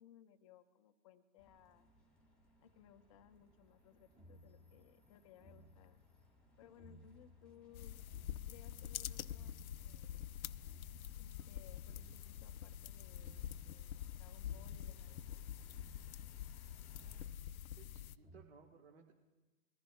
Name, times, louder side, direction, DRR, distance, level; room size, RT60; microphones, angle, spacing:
voice 1, 0.0-1.9 2.6-6.0 6.6-8.0 8.4-10.3 11.2-15.4, left 10 dB, 25° left, 10 dB, 0.5 m, -63 dB
sound 1, 1.4-17.3, equal, ahead, 1.9 m, -70 dB
sound 2, 3.8-18.4, left 1 dB, 15° right, 1.5 m, -64 dB
sound 3, 7.7-18.2, left 10 dB, 85° left, 0.5 m, -46 dB
voice 2, 17.7-19.1, right 6 dB, 50° right, 1 dB, 1.6 m, -61 dB
21.5 x 14.5 x 2.3 m, 1.2 s
hypercardioid pair, 135°, 42 cm